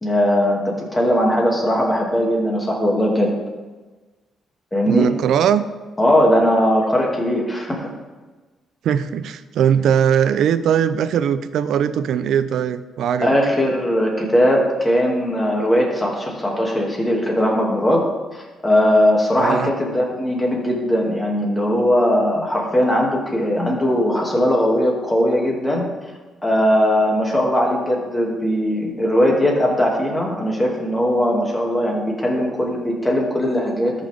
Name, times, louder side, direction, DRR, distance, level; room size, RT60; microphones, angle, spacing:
voice 1, 0.0-3.3 4.7-5.1 6.0-7.9 13.2-18.0 18.3-25.9 26.4-33.9, equal, 15° left, -1 dB, 2.4 m, -19 dB
voice 2, 4.9-5.6 8.8-13.3 19.4-19.7, right 8 dB, 75° right, 13 dB, 0.5 m, -19 dB
13.5 x 5.8 x 3.6 m, 1.3 s
cardioid pair, 90°, 0 cm